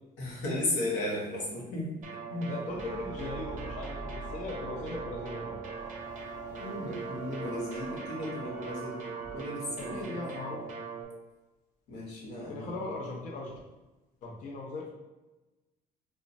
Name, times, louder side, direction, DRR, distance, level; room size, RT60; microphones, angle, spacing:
voice 1, 0.2-1.9 2.3-2.5 6.6-9.0 9.3-10.3 11.9-12.8, left 1 dB, 90° left, -3 dB, 0.8 m, -35 dB
sound 1, 2.0-11.0, right 5 dB, 50° right, 0.5 m, -41 dB
voice 2, 2.5-5.6 9.8-10.6 12.5-13.5 14.2-14.9, left 3 dB, 45° left, -2 dB, 0.5 m, -39 dB
sound 2, 2.7-9.4, right 1 dB, 5° right, 0.6 m, -46 dB
3.0 x 2.0 x 2.6 m, 1.1 s
cardioid pair, 110°, 17 cm